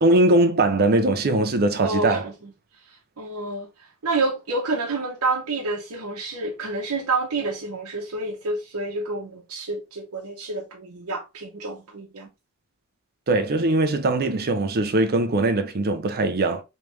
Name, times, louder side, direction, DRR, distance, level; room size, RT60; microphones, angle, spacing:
voice 1, 0.0-2.2 13.3-16.6, right 2 dB, 45° right, 0.6 m, -21 dB
voice 2, 1.8-2.3 3.2-12.3, right 3 dB, 80° right, 0.9 m, -28 dB
3.4 x 3.1 x 3.1 m
head